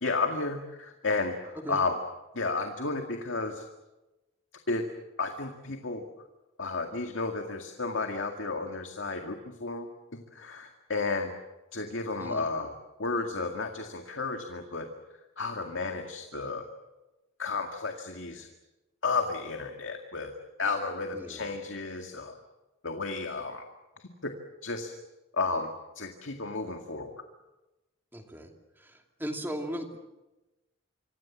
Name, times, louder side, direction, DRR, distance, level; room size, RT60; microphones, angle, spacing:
voice 1, 0.0-2.0 2.3-3.6 4.7-4.9 5.2-6.0 6.6-11.3 11.7-12.7 13.0-14.9 15.4-16.7 17.4-18.5 19.0-20.3 20.6-22.4 22.8-23.6 24.2-24.3 24.6-24.9 25.3-27.1, left 3 dB, 70° left, 4 dB, 2.1 m, -32 dB
voice 2, 21.1-21.6 28.1-28.5 28.8-30.0, equal, 10° right, 3 dB, 2.6 m, -38 dB
26.5 x 25.0 x 7.4 m, 1.0 s
head